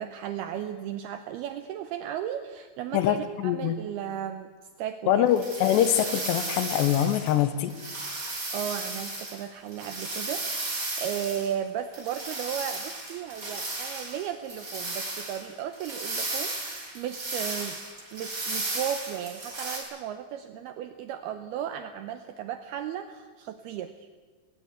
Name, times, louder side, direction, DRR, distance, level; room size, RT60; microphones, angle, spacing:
voice 1, 0.0-4.5 4.8-5.3 8.5-17.8 18.1-24.1, right 10 dB, 80° right, 9 dB, 2.3 m, -35 dB
voice 2, 2.9-3.8 5.1-7.7, left 11 dB, 75° left, 12 dB, 2.9 m, -24 dB
sound 1, 5.3-7.4 7.7-11.6 11.9-19.8, right 2 dB, 20° right, 3.7 m, -35 dB
19.5 x 18.5 x 8.2 m, 1.4 s
omnidirectional pair, 5.5 m